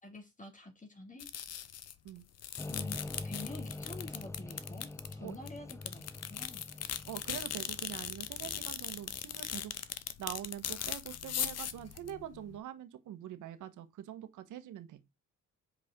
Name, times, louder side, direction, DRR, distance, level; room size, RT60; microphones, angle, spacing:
voice 1, 0.0-1.3 2.7-3.0 3.2-6.6, left 2 dB, 25° left, 2.3 m, -48 dB
sound 1, 1.2-2.1 2.3-12.6, left 9 dB, 55° left, 1.0 m, -39 dB
sound 2, 2.6-9.7, left 2 dB, 10° left, 0.7 m, -45 dB
voice 2, 7.1-9.7 10.2-15.0, right 11 dB, 80° right, 1.4 m, -44 dB
7.4 x 5.0 x 3.7 m
cardioid pair, 90°, 30 cm